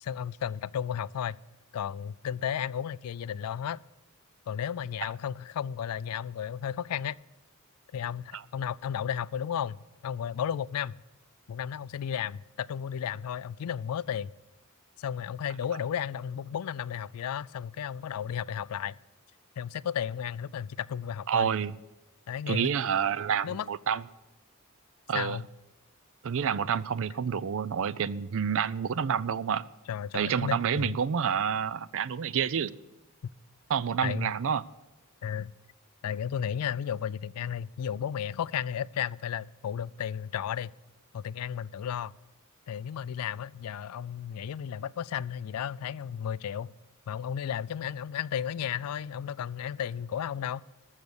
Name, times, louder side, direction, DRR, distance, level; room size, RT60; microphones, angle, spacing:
voice 1, 0.0-1.4 1.7-3.8 4.5-7.2 7.9-10.9 11.5-14.3 15.0-18.9 19.6-21.5 22.3-22.7 23.4-23.7 25.1-25.5 29.9-30.9 34.0-34.3 35.2-35.5 36.0-40.7 41.1-42.1 42.7-46.7 47.1-50.6, left 8 dB, 80° left, 0.3 m, -33 dB
voice 2, 21.3-21.7 22.5-24.0 25.1-25.4 26.2-29.6 30.1-32.7 33.7-34.6, right 7 dB, 65° right, 0.4 m, -28 dB
14.0 x 6.5 x 8.1 m
head